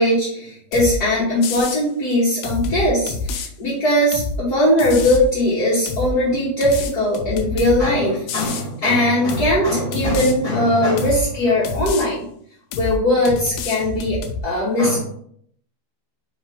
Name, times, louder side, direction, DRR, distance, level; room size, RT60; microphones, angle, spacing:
voice 1, 0.0-12.3 12.7-14.2 14.4-15.0, left 1 dB, 60° left, -8 dB, 1.0 m, -19 dB
sound 1, 0.7-1.0 1.4-1.8 2.4-3.5 4.1-4.4 4.8-5.3 5.9-6.1 6.6-7.8 8.3-8.7 9.3-9.6 9.9-10.3 11.0-11.3 11.6-12.1 12.7-13.0 13.3-14.4, left 4 dB, 80° left, 1.9 m, -27 dB
4.5 x 3.3 x 3.5 m, 0.67 s
omnidirectional pair, 3.3 m